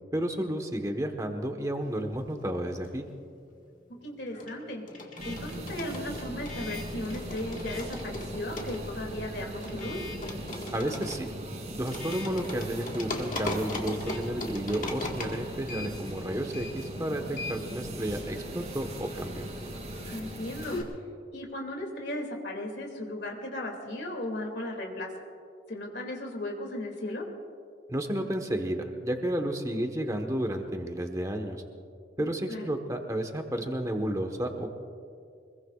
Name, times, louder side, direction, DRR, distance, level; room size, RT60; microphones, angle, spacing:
voice 1, 0.1-3.0 10.7-11.3 11.7-19.5 27.9-31.6 32.2-34.7, right 1 dB, 20° right, 4 dB, 1.3 m, -32 dB
sound 1, 2.0-3.3 3.5-20.8, left 2 dB, 45° left, 1.7 m, -40 dB
voice 2, 3.9-10.0 20.1-20.8 21.3-25.1 25.7-27.2 32.5-32.7, left 1 dB, 75° left, 1 dB, 2.6 m, -36 dB
sound 2, 5.2-20.8, right 1 dB, 40° right, 2.9 m, -39 dB
25.0 x 21.5 x 2.5 m, 2.3 s
head